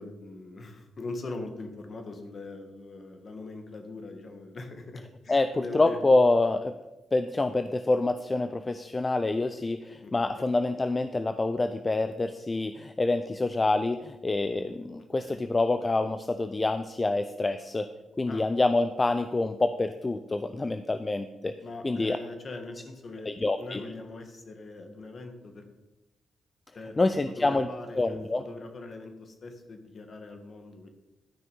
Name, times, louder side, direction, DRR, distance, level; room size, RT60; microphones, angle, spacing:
voice 1, 0.0-6.0 10.0-10.5 15.2-15.4 18.3-18.4 21.6-23.3 23.6-25.6 26.7-27.0 27.3-30.9, left 2 dB, 45° left, 6 dB, 1.7 m, -41 dB
voice 2, 5.3-6.7 7.1-17.9 18.2-21.5 21.8-22.2 23.3-23.8 27.0-27.7 28.0-28.4, left 2 dB, 25° left, 10 dB, 0.5 m, -26 dB
12.0 x 5.8 x 5.5 m, 1.0 s
cardioid pair, 90°, 0 cm